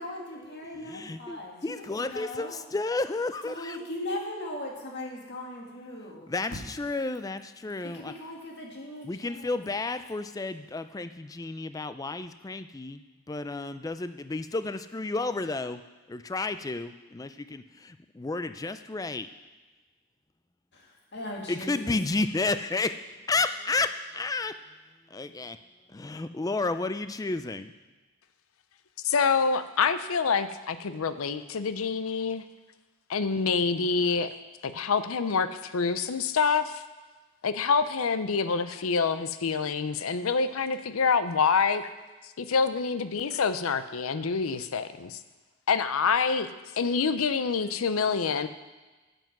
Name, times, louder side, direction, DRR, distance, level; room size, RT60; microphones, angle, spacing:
voice 1, 0.0-2.5 3.4-6.3 7.9-9.6 21.1-22.0, left 1 dB, 55° left, -1 dB, 2.0 m, -38 dB
voice 2, 0.7-3.8 6.3-8.1 9.0-13.0 13.3-15.8 16.1-17.6 18.2-19.3 21.5-23.0 23.3-24.6 25.1-25.6 25.9-27.7, left 3 dB, 15° left, 11 dB, 0.3 m, -31 dB
voice 3, 29.0-32.4 33.1-34.3 34.6-36.8 37.4-41.8 42.4-45.2 45.7-46.5 46.8-48.5, left 5 dB, 80° left, 12 dB, 0.6 m, -26 dB
9.1 x 7.9 x 6.0 m, 1.2 s
head